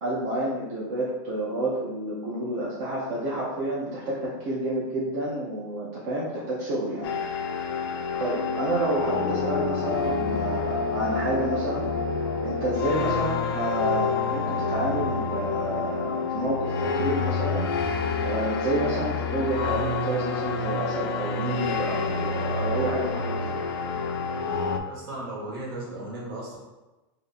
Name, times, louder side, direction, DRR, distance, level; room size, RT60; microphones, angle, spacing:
voice 1, 0.0-7.1 8.2-11.9 12.4-17.7 18.2-23.5, right 1 dB, 45° right, -6 dB, 0.7 m, -29 dB
sound 1, 7.0-24.8, left 4 dB, 80° left, 0.4 m, -28 dB
voice 2, 24.9-26.6, right 1 dB, 70° right, -4 dB, 1.4 m, -36 dB
2.7 x 2.6 x 4.0 m, 1.1 s
supercardioid pair, 170°, 13 cm